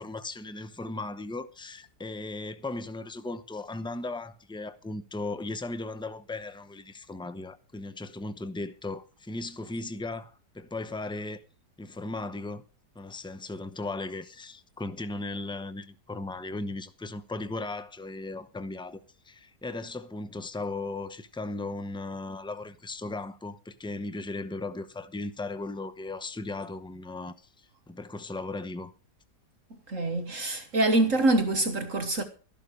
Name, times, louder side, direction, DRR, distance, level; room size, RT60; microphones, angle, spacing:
voice 1, 0.0-11.4 11.8-12.6 12.9-28.9, left 2 dB, 5° left, 0.5 m, -37 dB
voice 2, 29.9-32.2, right 2 dB, 50° right, 1.6 m, -25 dB
13.5 x 11.5 x 5.2 m
omnidirectional pair, 1.8 m